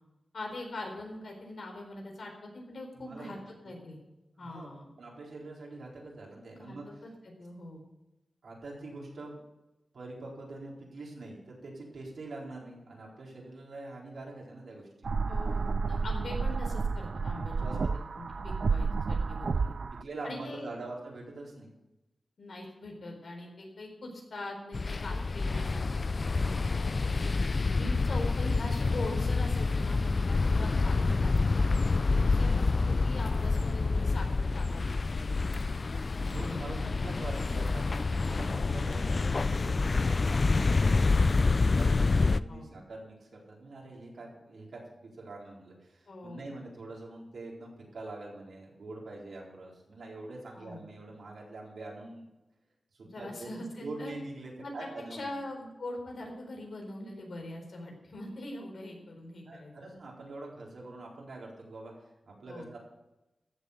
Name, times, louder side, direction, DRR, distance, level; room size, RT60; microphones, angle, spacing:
voice 1, 0.3-3.4 3.6-4.0 4.4-4.9 6.6-7.8 15.3-17.8 18.2-19.7 20.2-20.7 22.4-26.0 26.3-27.3 27.7-35.8 36.5-37.3 38.6-38.8 42.5-42.7 46.1-46.4 50.6-50.8 53.0-54.1 54.6-59.7 62.5-62.7, left 1 dB, 65° left, 1 dB, 4.2 m, -42 dB
voice 2, 2.9-3.4 3.6-3.7 4.4-4.7 5.0-7.0 8.4-9.4 9.9-15.1 17.6-17.9 19.9-21.7 36.3-37.8 38.1-52.2 52.9-53.5 53.8-55.4 59.5-62.8, right 2 dB, 80° right, -3 dB, 4.3 m, -44 dB
sound 1, 15.0-20.0, right 4 dB, 60° right, 0.4 m, -31 dB
sound 2, 24.7-42.4, left 3 dB, 45° left, 0.4 m, -27 dB
14.5 x 7.5 x 6.8 m, 0.99 s
wide cardioid pair, 105°, 0 cm